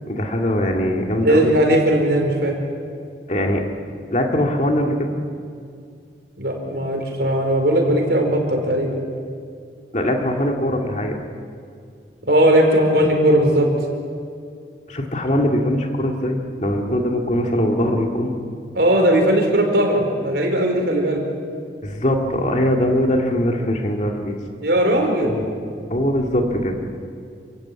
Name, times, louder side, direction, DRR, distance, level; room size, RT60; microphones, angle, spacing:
voice 1, 0.1-1.5 3.3-3.6 4.1-5.1 9.9-11.2 14.9-18.3 21.8-24.4 25.2-25.5 25.9-26.8, left 1 dB, 40° left, 1 dB, 2.2 m, -21 dB
voice 2, 1.2-2.5 6.4-9.0 12.3-13.7 18.7-21.2 24.6-25.3, right 1 dB, 65° right, 2 dB, 4.8 m, -18 dB
29.0 x 16.0 x 8.8 m, 2.3 s
head